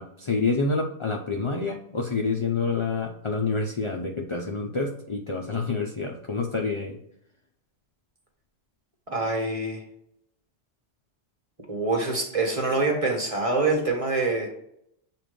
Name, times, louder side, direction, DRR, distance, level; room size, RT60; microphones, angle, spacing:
voice 1, 0.0-7.0, left 4 dB, 40° left, 1 dB, 0.4 m, -28 dB
voice 2, 9.1-9.8 11.7-14.5, right 3 dB, 30° right, 0 dB, 1.3 m, -25 dB
7.5 x 2.5 x 5.2 m, 0.73 s
omnidirectional pair, 1.2 m